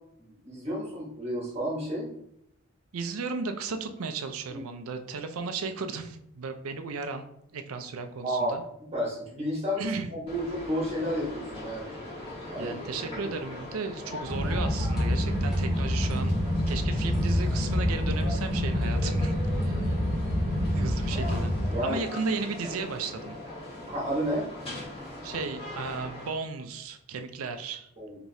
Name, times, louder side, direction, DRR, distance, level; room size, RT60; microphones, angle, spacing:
voice 1, 0.2-2.1 4.5-4.6 8.2-8.6 8.9-11.9 12.5-13.3 21.7-22.0 23.8-24.5 28.0-28.2, equal, 30° right, -5 dB, 1.2 m, -31 dB
voice 2, 2.9-7.3 7.5-8.6 9.8-10.1 12.6-19.8 20.7-21.5 21.8-23.4 25.2-27.9, right 4 dB, 80° right, 7 dB, 0.5 m, -35 dB
sound 1, 10.3-26.3, left 1 dB, 25° left, 1.3 m, -40 dB
sound 2, 14.3-21.8, equal, ahead, 1.2 m, -27 dB
4.7 x 2.9 x 2.7 m, 0.77 s
head